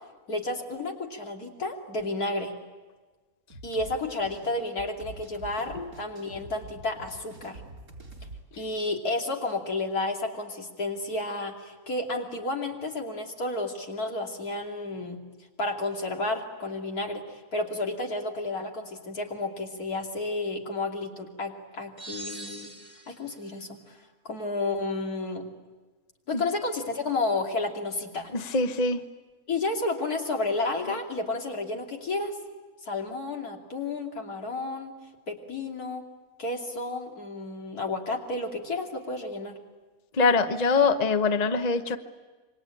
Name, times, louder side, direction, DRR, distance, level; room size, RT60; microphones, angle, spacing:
voice 1, 0.3-2.5 3.6-7.6 8.5-15.2 15.6-17.2 17.5-22.7 23.1-24.0 24.2-25.5 26.3-28.3 29.5-32.3 32.8-34.9 35.3-36.1 36.4-39.6, left 2 dB, 75° left, 1 dB, 3.3 m, -31 dB
sound 1, 3.5-8.4, right 2 dB, 70° right, 4.6 m, -46 dB
sound 2, 22.0-23.4, right 1 dB, 25° right, 3.7 m, -42 dB
voice 2, 28.3-29.0 40.1-42.0, left 4 dB, 30° left, 8 dB, 1.0 m, -24 dB
27.0 x 24.5 x 9.0 m, 1.3 s
omnidirectional pair, 1.6 m